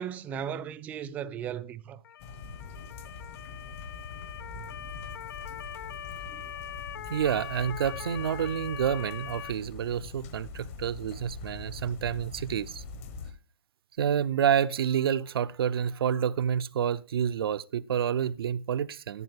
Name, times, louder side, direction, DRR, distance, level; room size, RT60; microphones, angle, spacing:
voice 1, 0.0-2.0 4.5-4.8 6.3-6.5, right 8 dB, 10° right, 0.4 m, -37 dB
Motor vehicle (road) / Siren, 2.0-9.5, left 9 dB, 60° left, 0.5 m, -42 dB
sound 1, 2.2-13.3, left 4 dB, 35° left, 1.2 m, -43 dB
voice 2, 7.1-12.8 14.0-19.2, right 8 dB, 70° right, 0.6 m, -28 dB
11.0 x 8.9 x 3.5 m
hypercardioid pair, 160°, 13 cm